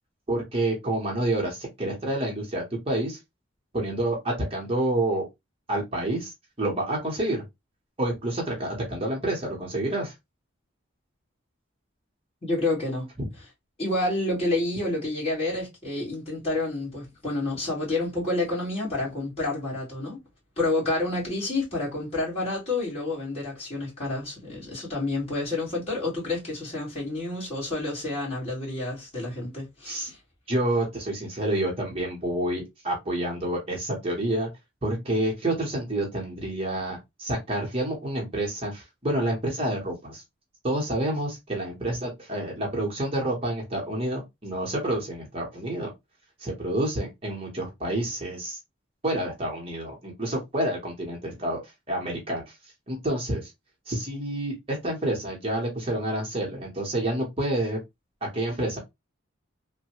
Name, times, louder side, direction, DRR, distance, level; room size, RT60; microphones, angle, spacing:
voice 1, 0.3-3.2 3.7-5.3 5.7-6.3 6.6-7.4 8.0-10.1 29.8-30.1 30.5-34.5 34.8-40.2 40.6-45.9 46.4-48.6 49.0-51.6 51.9-52.5 52.9-53.5 53.9-57.8 58.2-58.8, right 1 dB, 30° right, 0.9 m, -28 dB
voice 2, 12.4-13.1 13.8-20.2 20.6-30.2, left 2 dB, 30° left, 1.7 m, -29 dB
3.1 x 2.2 x 2.8 m
head